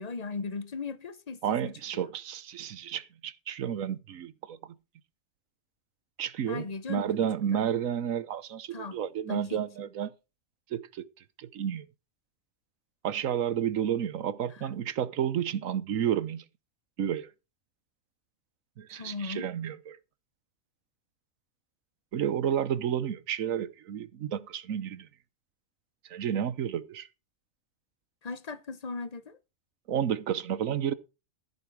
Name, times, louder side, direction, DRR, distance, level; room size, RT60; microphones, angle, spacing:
voice 1, 0.0-2.1 6.5-7.1 8.7-9.0 9.3-9.6 14.5-14.7 18.9-19.5 28.2-29.4, left 4 dB, 35° left, 0.8 m, -38 dB
voice 2, 1.4-4.6 6.2-10.1 10.7-11.0 11.4-11.8 13.0-16.4 17.0-17.3 18.8-20.0 22.1-25.1 26.1-27.1 29.9-30.9, right 9 dB, 80° right, 1.3 m, -31 dB
14.0 x 8.3 x 4.7 m
omnidirectional pair, 1.4 m